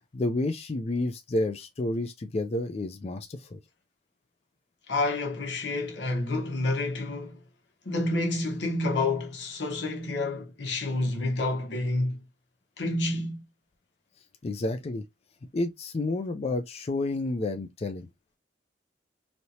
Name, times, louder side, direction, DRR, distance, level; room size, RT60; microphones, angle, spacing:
voice 1, 0.1-3.6 14.4-15.0 15.5-18.1, left 2 dB, 35° left, 0.4 m, -30 dB
voice 2, 4.9-7.4 7.8-12.2 12.8-13.4, left 2 dB, 85° left, 1.0 m, -29 dB
3.1 x 2.7 x 2.7 m
head